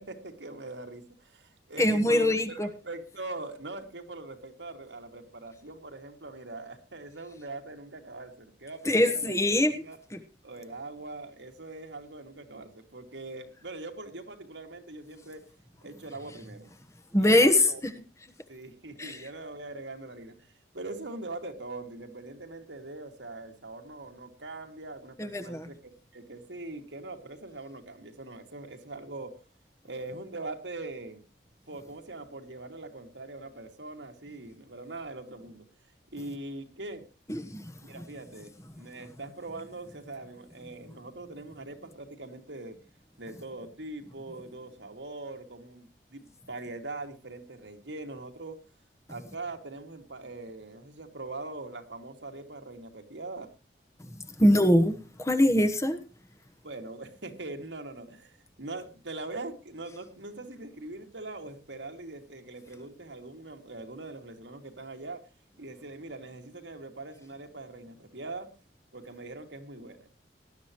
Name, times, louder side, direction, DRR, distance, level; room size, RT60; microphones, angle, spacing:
voice 1, 0.0-9.3 9.7-10.0 10.4-15.4 15.8-16.7 17.2-17.8 18.5-20.5 20.7-29.3 29.8-31.2 31.7-35.7 36.1-37.0 37.8-42.8 43.2-48.6 49.1-53.5 56.6-65.2 65.6-68.5 68.9-70.1, right 2 dB, 80° right, 4 dB, 2.5 m, -42 dB
voice 2, 1.8-2.7 8.8-9.7 10.1-10.2 17.1-17.9 19.0-19.3 25.2-25.7 37.3-38.0 54.0-54.1 54.4-56.0, left 1 dB, 15° left, 9 dB, 1.2 m, -23 dB
19.0 x 12.0 x 3.1 m, 0.32 s
head